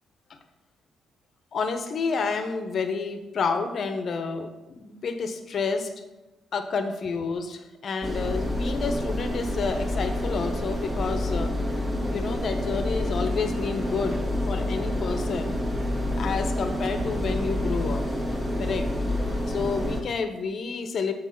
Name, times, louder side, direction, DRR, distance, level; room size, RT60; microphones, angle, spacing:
voice 1, 1.5-5.9 6.5-11.5 12.1-15.5 16.1-18.0 18.6-18.9 19.5-21.1, left 5 dB, 55° left, 7 dB, 0.8 m, -29 dB
sound 1, 8.0-20.0, left 1 dB, 25° right, 1.6 m, -28 dB
6.3 x 4.7 x 5.8 m, 1.1 s
cardioid pair, 90°, 0 cm